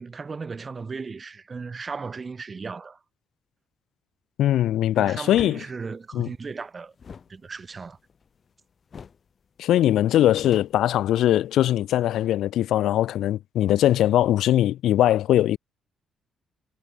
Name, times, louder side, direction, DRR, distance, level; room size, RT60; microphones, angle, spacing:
voice 1, 0.0-3.0 5.0-6.9 7.3-8.0, right 4 dB, 35° right, 1.4 m, -36 dB
voice 2, 4.4-5.6 6.1-6.3 9.6-15.6, left 12 dB, 80° left, 0.8 m, -21 dB
sound 1, 5.3-5.6 7.0-8.5 8.9-9.3 9.6-9.7 10.0-11.6, left 6 dB, 45° left, 3.0 m, -44 dB
cardioid pair, 90°, 0 cm